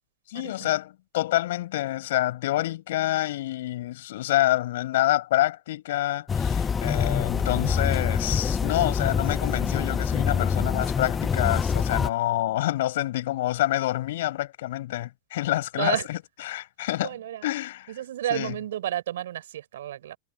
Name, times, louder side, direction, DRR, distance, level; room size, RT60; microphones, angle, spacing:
voice 1, 0.3-17.2 17.4-18.0 18.3-18.6, left 15 dB, 65° left, 5.4 m, -27 dB
sound 1, 6.3-12.1, left 6 dB, 20° left, 0.9 m, -25 dB
voice 2, 17.0-17.4 17.9-20.2, right 12 dB, 65° right, 5.2 m, -31 dB
figure-of-eight pair, 90°, 0 cm